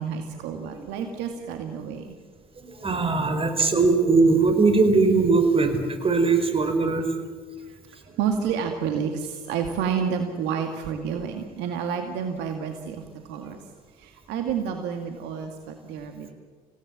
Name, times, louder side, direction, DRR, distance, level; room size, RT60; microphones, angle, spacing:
voice 1, 0.0-2.1 8.2-13.0 13.3-13.6 14.0-16.3, right 7 dB, 70° right, 5 dB, 2.1 m, -29 dB
voice 2, 2.6-7.1, right 4 dB, 30° right, 7 dB, 4.6 m, -20 dB
28.0 x 17.5 x 7.6 m, 1.5 s
hypercardioid pair, 60°, 19 cm